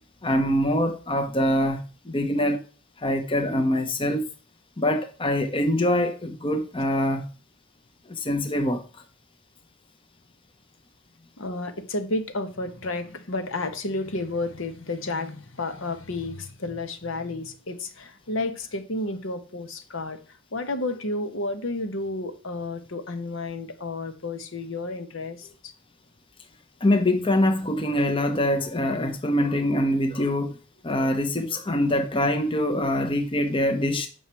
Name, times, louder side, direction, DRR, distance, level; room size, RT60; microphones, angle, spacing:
voice 1, 0.2-2.6 3.0-4.3 4.8-7.3 8.1-8.8 26.8-30.6 30.8-34.1, left 1 dB, 25° left, 0.8 m, -24 dB
voice 2, 11.4-25.7, left 2 dB, 65° left, 1.1 m, -31 dB
7.9 x 5.6 x 4.3 m
head